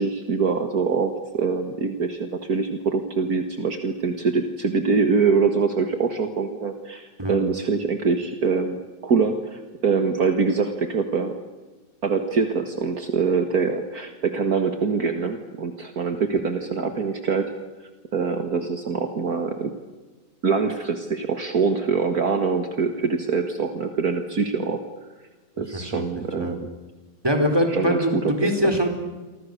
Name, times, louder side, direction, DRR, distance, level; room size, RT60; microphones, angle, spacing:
voice 1, 0.0-11.4 12.0-17.5 18.1-19.7 20.4-24.8 25.6-26.7 27.7-28.5, right 5 dB, 55° right, 6 dB, 2.1 m, -24 dB
voice 2, 25.7-26.1 26.4-26.5 27.2-28.9, equal, 15° right, 4 dB, 4.1 m, -23 dB
29.5 x 24.0 x 6.7 m, 1.2 s
omnidirectional pair, 1.9 m